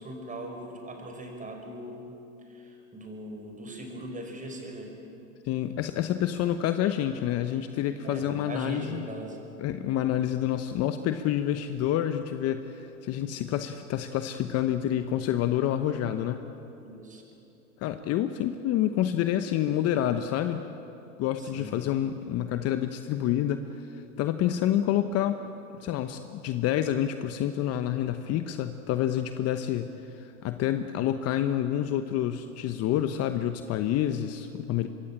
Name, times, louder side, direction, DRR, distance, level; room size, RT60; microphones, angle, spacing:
voice 1, 0.0-2.1 2.4-5.0 8.0-9.4 16.8-17.2 21.4-21.8, right 1 dB, 20° right, 3 dB, 5.3 m, -40 dB
voice 2, 5.4-9.1 9.6-16.5 17.8-20.6 21.2-25.5 25.8-34.9, left 11 dB, 35° left, 9 dB, 1.0 m, -28 dB
25.5 x 22.0 x 8.6 m, 2.9 s
hypercardioid pair, 115°, 43 cm